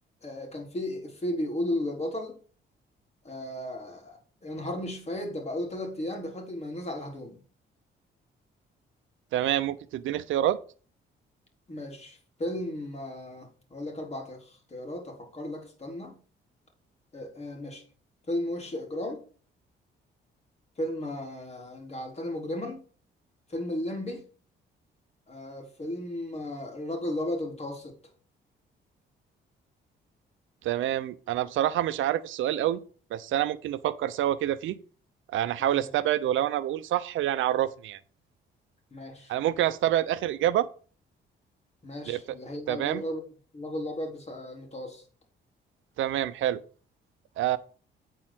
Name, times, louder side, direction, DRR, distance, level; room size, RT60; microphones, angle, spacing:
voice 1, 0.2-2.4 3.2-7.4 11.7-16.2 17.1-17.8 18.3-19.2 20.8-22.8 23.5-24.2 25.3-28.0 35.6-35.9 38.9-39.3 41.8-43.2 43.5-45.0, left 1 dB, 35° left, 3.8 m, -35 dB
voice 2, 9.3-10.6 30.6-32.8 33.1-34.8 35.3-38.0 39.3-40.7 42.1-42.2 42.7-43.0 46.0-46.6 47.4-47.6, right 12 dB, 80° right, 0.8 m, -27 dB
8.9 x 4.6 x 6.2 m
cardioid pair, 90°, 20 cm